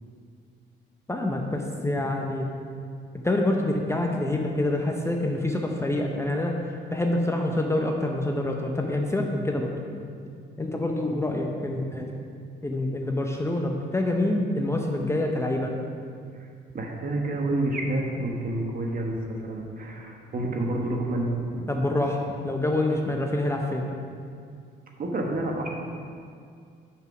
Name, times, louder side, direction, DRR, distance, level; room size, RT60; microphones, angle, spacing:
voice 1, 1.1-2.5 3.1-9.7 10.6-12.1 12.6-15.7 21.7-23.9, left 1 dB, 15° left, 1 dB, 0.7 m, -26 dB
voice 2, 16.7-21.7 25.0-25.7, right 1 dB, 45° right, 0 dB, 1.3 m, -29 dB
6.5 x 4.9 x 5.9 m, 2.3 s
cardioid pair, 90°, 20 cm